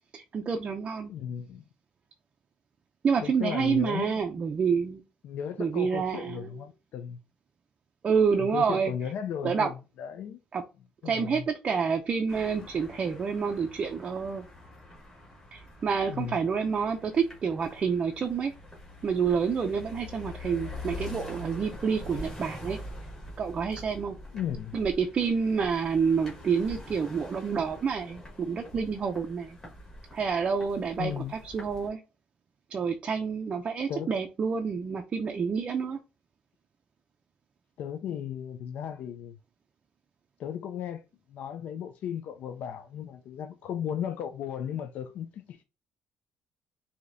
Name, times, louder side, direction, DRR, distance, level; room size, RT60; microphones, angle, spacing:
voice 1, 0.1-1.1 3.0-5.0 5.6-6.5 8.0-8.9 9.4-9.7 10.5-10.6 11.0-14.4 15.5-18.5 19.0-22.8 23.4-24.1 24.7-29.6 30.1-31.1 31.5-32.0 32.7-36.0, right 6 dB, 30° right, 0.4 m, -28 dB
voice 2, 1.1-1.6 3.2-4.2 5.2-7.2 8.4-10.4 11.0-11.5 16.1-16.4 24.3-24.8 31.0-31.3 33.9-34.1 37.8-39.4 40.4-41.0 41.3-45.6, left 9 dB, 60° left, 0.4 m, -35 dB
sound 1, 12.3-31.9, left 1 dB, 15° left, 1.6 m, -44 dB
4.9 x 2.7 x 2.6 m
cardioid pair, 160°, 3 cm